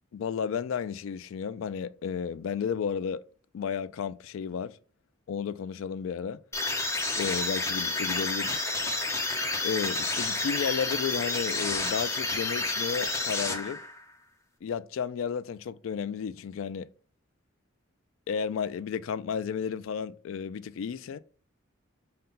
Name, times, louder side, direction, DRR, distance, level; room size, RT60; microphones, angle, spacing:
voice 1, 0.1-3.2 3.5-4.8 5.3-6.4 7.1-8.6 9.6-13.8 14.6-16.9 18.3-21.2, left 7 dB, 70° left, 0.3 m, -32 dB
sound 1, 6.5-14.0, left 2 dB, 15° left, 0.9 m, -30 dB
5.4 x 2.2 x 3.8 m
head